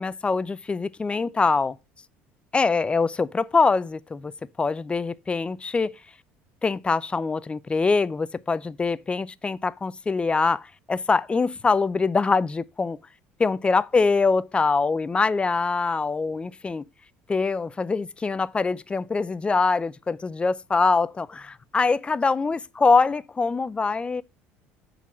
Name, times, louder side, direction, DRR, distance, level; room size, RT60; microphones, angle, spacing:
voice 1, 0.0-1.8 2.5-4.3 4.6-5.9 6.6-13.0 13.4-16.8 17.3-24.2, left 4 dB, 20° left, 0.4 m, -24 dB
7.2 x 4.0 x 6.0 m
supercardioid pair, 90°, 5 cm